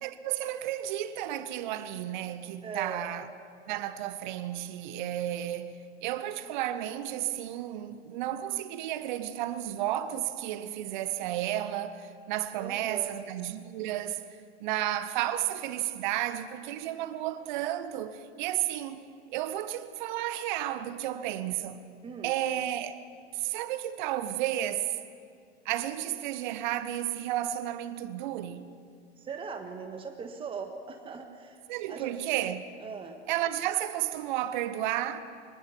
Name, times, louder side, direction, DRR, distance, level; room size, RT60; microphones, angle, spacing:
voice 1, 0.0-3.2 3.7-14.2 14.6-19.0 19.3-21.8 22.2-23.0 23.3-24.9 25.6-28.6 31.7-32.6 33.3-35.2, right 12 dB, 45° right, 1.3 m, -32 dB
voice 2, 2.6-3.1 12.6-13.3 22.0-22.3 29.2-31.6 31.9-32.1 32.8-33.2, right 5 dB, 15° right, 1.5 m, -39 dB
24.5 x 19.0 x 6.1 m
figure-of-eight pair, 95°, 32 cm